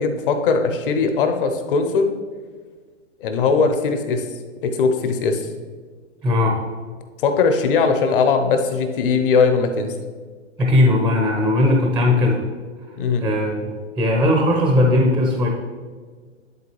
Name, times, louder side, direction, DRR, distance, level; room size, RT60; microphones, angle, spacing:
voice 1, 0.0-2.1 3.2-4.2 4.6-5.5 7.2-9.9 13.0-13.3, left 5 dB, 45° left, 6 dB, 0.9 m, -19 dB
voice 2, 6.2-6.6 10.6-12.4 13.2-15.5, left 1 dB, 5° right, 1 dB, 0.5 m, -18 dB
10.5 x 3.8 x 3.3 m, 1.6 s
hypercardioid pair, 125°, 36 cm